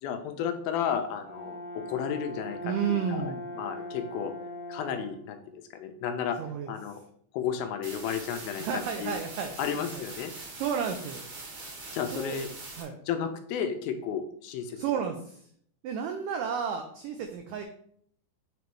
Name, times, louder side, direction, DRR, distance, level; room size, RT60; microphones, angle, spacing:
voice 1, 0.0-4.3 4.7-6.4 6.7-7.0 7.3-9.1 9.6-10.3 11.9-12.5 13.1-14.8, left 8 dB, 80° left, 6 dB, 2.3 m, -33 dB
Brass instrument, 0.9-5.3, left 1 dB, 45° left, 0.5 m, -40 dB
voice 2, 2.6-3.4 6.4-6.7 8.6-10.0 10.6-11.3 12.1-12.4 12.8-12.9 14.8-15.5 15.8-17.6, right 7 dB, 85° right, 5 dB, 1.9 m, -32 dB
sound 1, 7.8-12.8, right 3 dB, 55° right, 1.4 m, -42 dB
6.7 x 3.1 x 4.6 m, 0.64 s
omnidirectional pair, 4.4 m